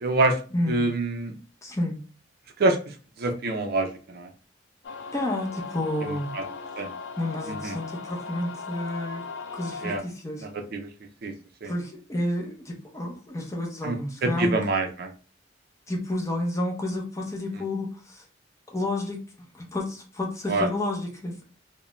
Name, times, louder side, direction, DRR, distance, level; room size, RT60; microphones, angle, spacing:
voice 1, 0.0-0.4 0.7-1.3 2.6-4.3 6.0-6.4 6.8-6.9 7.5-7.8 9.8-10.0 10.4-10.9 11.2-11.3 11.6-11.7 13.8-15.1 20.5-20.7, right 2 dB, 55° right, 5 dB, 0.5 m, -26 dB
voice 2, 0.5-0.9 1.6-2.0 5.1-6.3 7.2-9.2 9.5-10.5 11.6-14.6 15.9-18.2 18.7-19.2 19.5-21.3, left 1 dB, 15° left, 0 dB, 0.6 m, -30 dB
sound 1, 4.8-10.0, left 5 dB, 70° left, 0.4 m, -38 dB
2.4 x 2.1 x 3.0 m, 0.37 s
head